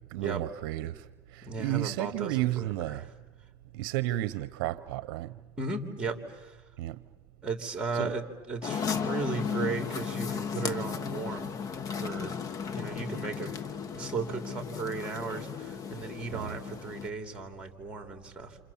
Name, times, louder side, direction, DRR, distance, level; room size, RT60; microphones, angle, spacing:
voice 1, 0.1-3.0 3.7-5.4 6.8-7.0 7.9-8.1 16.3-16.6, right 16 dB, 70° right, 0.8 m, -32 dB
voice 2, 1.4-2.9 5.6-6.6 7.4-11.6 11.9-12.4 12.7-13.6 13.8-18.6, right 3 dB, 10° right, 3.0 m, -36 dB
sound 1, 8.6-17.1, left 6 dB, 30° left, 1.2 m, -35 dB
28.0 x 28.0 x 7.2 m
supercardioid pair, 135°, 12 cm